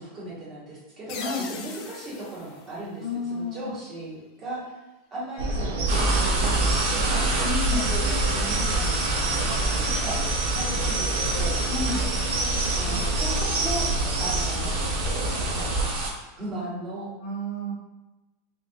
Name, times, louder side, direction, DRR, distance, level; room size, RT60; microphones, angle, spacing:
voice 1, 0.0-4.8 5.1-7.2 7.7-9.0 9.3-11.6 12.8-13.9 14.2-14.7 15.5-15.7 16.3-17.1, right 1 dB, 20° right, -9 dB, 1.5 m, -36 dB
voice 2, 1.1-1.4 3.0-3.7 7.4-7.9 11.7-12.0 17.2-17.7, left 3 dB, 90° left, -4 dB, 1.4 m, -31 dB
sound 1, 1.1-3.7, left 5 dB, 35° left, 0.3 m, -41 dB
sound 2, 5.4-15.9, right 2 dB, 85° right, 0.8 m, -27 dB
sound 3, 5.9-16.1, right 3 dB, 50° right, 0.8 m, -29 dB
3.7 x 2.4 x 2.8 m, 1.1 s
supercardioid pair, 170°, 0 cm